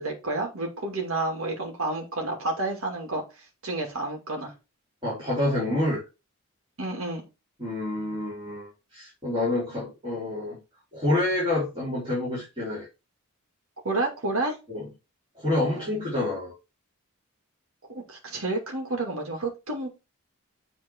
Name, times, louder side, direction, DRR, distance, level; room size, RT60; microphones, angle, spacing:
voice 1, 0.0-4.5 6.8-7.2 13.8-14.6 15.6-16.2 17.9-19.9, right 2 dB, 75° right, 2.3 m, -30 dB
voice 2, 5.0-6.0 7.6-10.6 10.9-12.9 14.7-14.8 15.4-16.5, left 1 dB, 25° right, 3.9 m, -28 dB
7.8 x 3.9 x 4.5 m
head